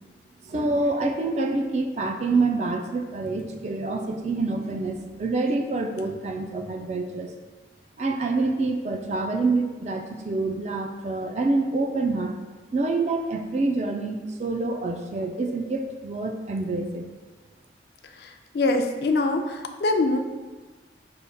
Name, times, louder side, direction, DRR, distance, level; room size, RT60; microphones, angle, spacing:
voice 1, 0.4-7.3 8.0-12.4 12.7-17.1, right 3 dB, 40° right, 3 dB, 0.3 m, -26 dB
voice 2, 18.5-20.2, left 2 dB, 60° left, 6 dB, 0.3 m, -23 dB
5.4 x 3.5 x 2.2 m, 1.3 s
head